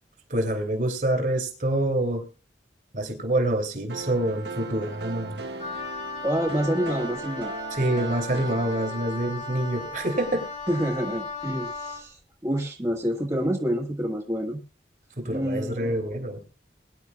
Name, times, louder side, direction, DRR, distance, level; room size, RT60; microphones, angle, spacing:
voice 1, 0.3-2.3 2.9-5.4 7.7-10.5 15.2-16.6, right 1 dB, 50° right, 4 dB, 3.0 m, -26 dB
sound 1, 3.9-9.8, right 3 dB, 75° right, 1.6 m, -38 dB
Wind instrument woodwind instrument, 5.6-12.0, left 2 dB, 45° left, 3.3 m, -36 dB
voice 2, 6.2-7.5 10.7-12.2 12.4-14.6 15.3-15.9, equal, 20° right, -2 dB, 1.8 m, -27 dB
22.0 x 11.0 x 2.4 m, 0.33 s
head